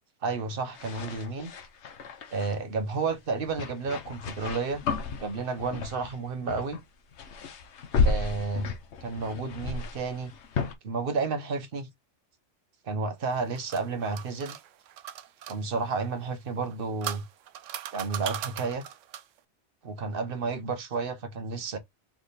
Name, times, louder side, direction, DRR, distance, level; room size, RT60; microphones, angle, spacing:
voice 1, 0.2-1.5 2.3-4.8 5.2-6.8 8.0-8.7 9.0-10.3 10.8-11.9 12.8-14.6 15.5-17.2 17.9-18.8 19.8-21.8, right 4 dB, 50° right, 1.0 m, -31 dB
sound 1, 0.7-2.5 3.5-6.2 6.5-6.8 7.1-10.7, left 4 dB, 70° left, 1.1 m, -32 dB
sound 2, 13.3-15.6 16.6-19.4, right 11 dB, 85° right, 0.9 m, -39 dB
3.6 x 3.3 x 4.0 m
omnidirectional pair, 1.2 m